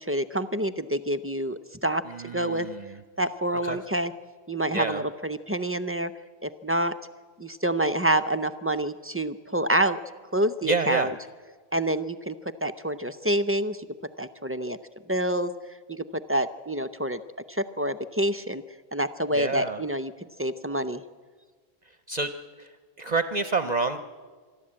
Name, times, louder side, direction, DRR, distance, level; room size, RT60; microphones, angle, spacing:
voice 1, 0.0-2.0 2.3-2.7 3.2-4.1 4.5-6.1 6.4-6.9 7.4-10.0 10.3-11.1 11.7-12.3 12.6-13.9 14.2-14.8 15.1-15.5 15.9-17.2 17.5-18.6 18.9-20.1 20.4-21.0, right 1 dB, 20° right, 10 dB, 0.4 m, -27 dB
voice 2, 2.1-3.0 3.6-3.8 4.7-5.0 10.7-11.1 19.3-19.8 22.1-22.3 22.6-22.7 23.0-24.0, right 4 dB, 45° right, 10 dB, 0.8 m, -28 dB
25.5 x 11.5 x 8.7 m, 1.5 s
omnidirectional pair, 1.1 m